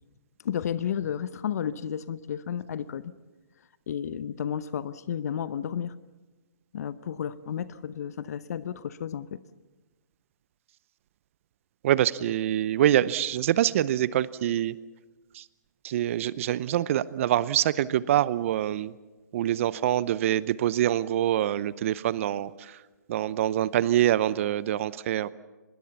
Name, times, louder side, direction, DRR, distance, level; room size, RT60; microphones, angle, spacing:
voice 1, 0.4-3.1 3.9-5.9 6.7-9.4, left 8 dB, 55° left, 16 dB, 0.8 m, -32 dB
voice 2, 11.8-14.8 15.3-15.4 15.8-18.9 19.3-22.8 23.1-25.3, right 12 dB, 45° right, 19 dB, 0.7 m, -25 dB
24.5 x 21.0 x 7.0 m, 1.2 s
hypercardioid pair, 135°, 10 cm